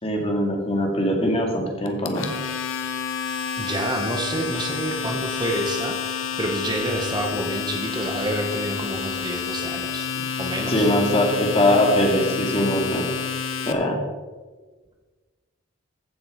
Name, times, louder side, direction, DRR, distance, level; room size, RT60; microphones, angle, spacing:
voice 1, 0.0-2.3 10.7-13.1 13.7-14.0, left 1 dB, 30° left, 1 dB, 2.1 m, -21 dB
Domestic sounds home sounds, 1.9-13.7, left 6 dB, 70° left, 1.0 m, -29 dB
voice 2, 3.6-10.1 10.4-10.9, right 1 dB, 20° right, 2 dB, 1.1 m, -28 dB
15.0 x 7.0 x 5.0 m, 1.4 s
head